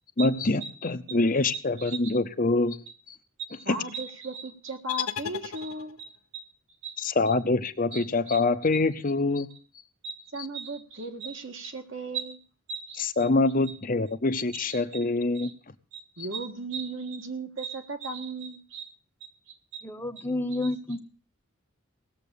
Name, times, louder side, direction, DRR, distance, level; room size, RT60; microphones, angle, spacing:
voice 1, 0.2-2.8 3.1-3.2 3.7-3.8 7.0-9.5 13.0-15.5, left 3 dB, 40° left, 10 dB, 0.7 m, -25 dB
voice 2, 1.8-2.2 3.6-6.5 6.8-7.0 7.9-8.4 10.0-12.4 12.7-13.0 14.5-15.0 15.4-15.5 15.9-18.9 19.5-19.8 20.6-20.7, right 3 dB, 60° right, 5 dB, 1.7 m, -37 dB
sound 1, 4.9-6.2, left 9 dB, 80° left, 0.8 m, -35 dB
voice 3, 19.8-21.0, left 2 dB, 10° left, 6 dB, 1.0 m, -30 dB
18.0 x 7.4 x 6.9 m, 0.39 s
head